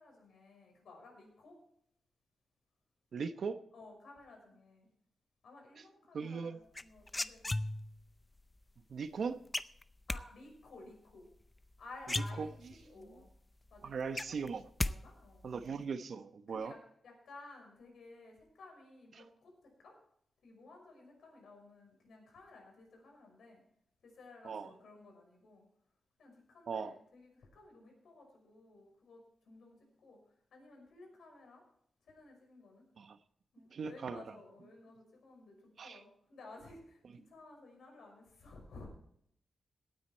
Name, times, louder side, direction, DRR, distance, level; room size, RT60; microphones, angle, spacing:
voice 1, 0.0-1.6 3.7-4.9 5.4-7.6 10.1-11.3 11.8-13.3 13.7-14.5 14.8-15.5 16.5-16.8 17.0-20.0 20.4-23.6 24.0-25.6 26.2-31.6 32.0-32.9 33.5-38.9, left 3 dB, 80° left, 2 dB, 5.7 m, -55 dB
voice 2, 3.1-3.6 6.1-6.6 8.9-9.4 12.4-12.5 13.8-14.6 15.4-16.7 19.2-19.3 24.4-24.7 26.7-26.9 33.0-33.2 33.7-34.2 35.8-36.0, right 5 dB, 65° right, 10 dB, 0.9 m, -39 dB
sound 1, 6.7-8.1 9.5-10.2 11.6-11.7 12.0-12.9 13.3-13.4 13.7-14.9 15.2-15.7, left 2 dB, 15° left, 0.5 m, -36 dB
17.5 x 9.4 x 4.4 m, 0.71 s
wide cardioid pair, 120°, 0 cm